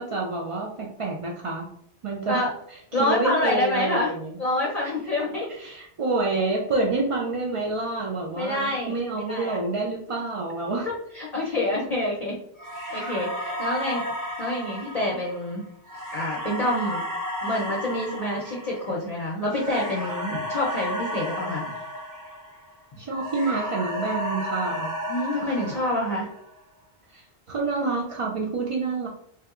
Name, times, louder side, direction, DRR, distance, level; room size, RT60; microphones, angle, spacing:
voice 1, 0.0-1.7 2.0-2.4 3.0-4.3 4.8-4.9 5.6-10.9 11.4-11.6 13.4-13.6 23.0-24.9 25.4-25.5 27.1-27.2 27.5-29.1, right 3 dB, 60° right, -1 dB, 0.3 m, -28 dB
voice 2, 2.9-4.1 4.4-5.5 8.3-9.7 11.1-12.4 12.9-14.0 14.4-15.6 16.1-17.0 17.4-21.6 25.1-26.3, left 1 dB, 45° left, -4 dB, 0.6 m, -27 dB
sound 1, 12.6-22.8 23.1-26.5, equal, 20° right, 0.7 m, -33 dB
3.3 x 2.8 x 2.3 m, 0.70 s
omnidirectional pair, 1.1 m